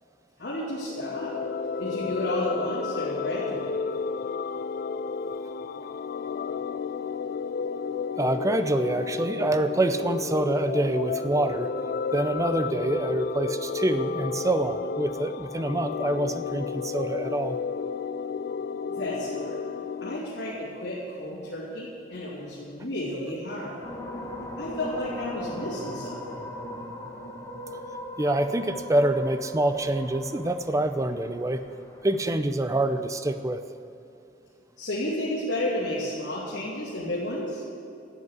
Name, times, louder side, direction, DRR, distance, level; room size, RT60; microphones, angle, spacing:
voice 1, 0.4-1.3 1.8-3.8 18.9-19.6 20.0-23.7 24.6-26.2 34.8-37.6, left 1 dB, 80° left, -8 dB, 2.7 m, -32 dB
sound 1, 0.9-20.2, left 5 dB, 55° left, 0.3 m, -32 dB
voice 2, 8.2-11.7 12.1-17.6 28.2-31.6 32.0-33.6, right 1 dB, 20° right, 10 dB, 0.5 m, -26 dB
sound 2, 23.8-32.3, equal, 15° left, 1.5 m, -39 dB
12.0 x 8.1 x 8.2 m, 2.6 s
head